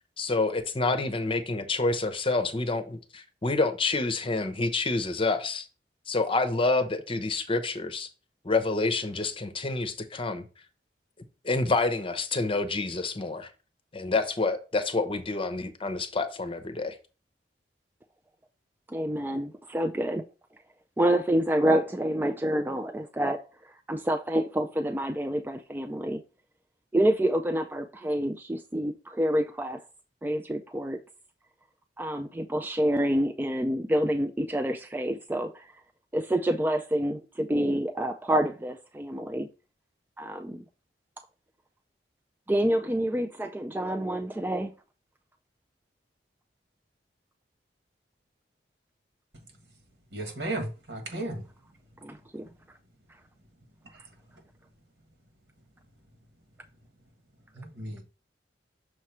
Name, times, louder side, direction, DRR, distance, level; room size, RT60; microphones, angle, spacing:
voice 1, 0.2-5.7 6.1-8.1 8.4-10.4 11.4-13.5 13.9-17.0, left 3 dB, 30° left, 0.8 m, -28 dB
voice 2, 18.9-20.3 21.0-23.4 23.9-26.2 26.9-29.8 30.2-31.0 32.0-35.7 36.1-39.5 40.2-40.6 42.5-44.7 52.0-52.5, right 1 dB, 10° right, 0.4 m, -27 dB
voice 3, 50.1-51.4 57.6-58.0, right 1 dB, 75° right, 1.8 m, -34 dB
6.5 x 3.1 x 5.8 m
head